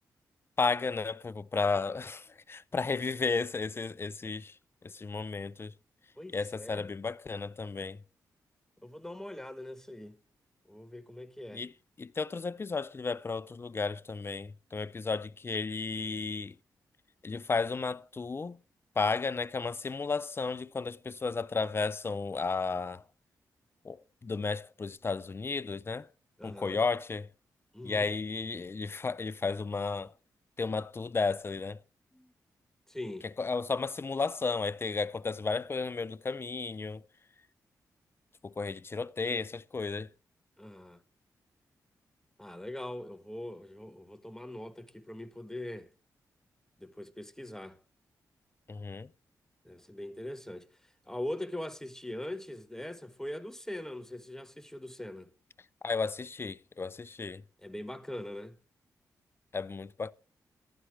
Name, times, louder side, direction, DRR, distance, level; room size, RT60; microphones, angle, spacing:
voice 1, 0.6-4.6 4.8-5.7 6.3-8.0 11.5-11.7 12.0-16.6 17.2-18.6 19.0-23.0 23.8-26.1 26.4-27.3 27.8-30.1 30.6-31.8 33.4-37.0 38.4-40.1 48.7-49.1 55.8-57.4 59.5-60.1, left 4 dB, 35° left, 0.7 m, -33 dB
voice 2, 6.2-6.9 8.8-10.1 10.7-11.6 26.4-26.8 27.7-28.1 32.1-32.3 32.9-33.3 40.6-41.0 42.4-45.9 46.8-47.8 49.6-50.7 51.1-55.3 57.6-58.6, left 1 dB, 5° left, 1.4 m, -41 dB
14.5 x 11.5 x 3.3 m
cardioid pair, 65°, 7 cm